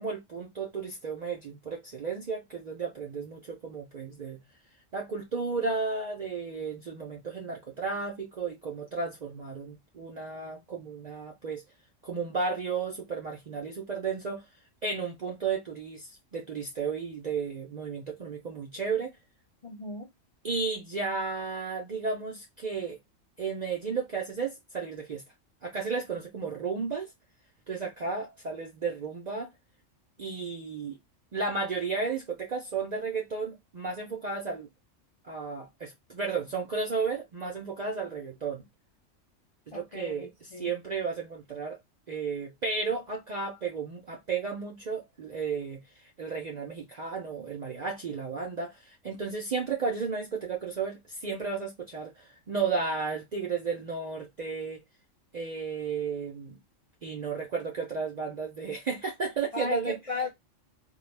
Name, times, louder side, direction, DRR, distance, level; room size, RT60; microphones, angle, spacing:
voice 1, 0.0-4.4 4.9-11.6 12.0-14.5 14.8-19.1 20.4-23.0 23.4-25.2 25.6-27.1 27.7-29.5 30.2-31.0 31.3-34.7 35.2-38.7 39.7-41.8 42.1-45.8 46.2-54.8 55.3-56.6 57.0-60.0, right 4 dB, 55° right, 0.4 m, -33 dB
voice 2, 19.6-20.1 39.7-40.7 59.5-60.3, left 4 dB, 45° left, 0.4 m, -36 dB
2.3 x 2.0 x 3.1 m
omnidirectional pair, 1.3 m